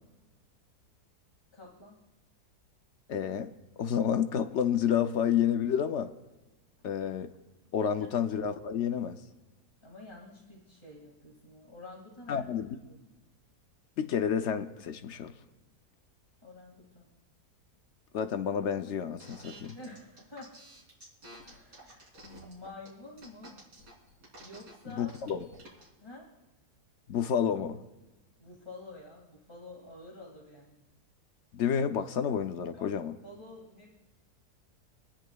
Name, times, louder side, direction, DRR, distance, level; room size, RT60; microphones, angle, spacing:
voice 1, 1.5-2.0 6.8-6.9 8.0-8.1 9.8-12.5 12.8-13.0 16.4-17.1 19.7-20.5 21.4-23.7 24.4-25.1 26.0-26.3 28.4-30.8 32.7-33.9, left 2 dB, 15° left, -4 dB, 2.0 m, -49 dB
voice 2, 3.1-3.5 3.8-6.1 6.8-7.3 7.7-9.2 12.3-12.8 14.0-15.3 18.1-19.8 25.0-25.4 27.1-27.8 31.5-33.1, left 8 dB, 60° left, 8 dB, 0.8 m, -29 dB
sound 1, 19.2-25.9, right 1 dB, 90° right, 3.9 m, -51 dB
27.0 x 10.0 x 2.3 m, 1.1 s
omnidirectional pair, 1.7 m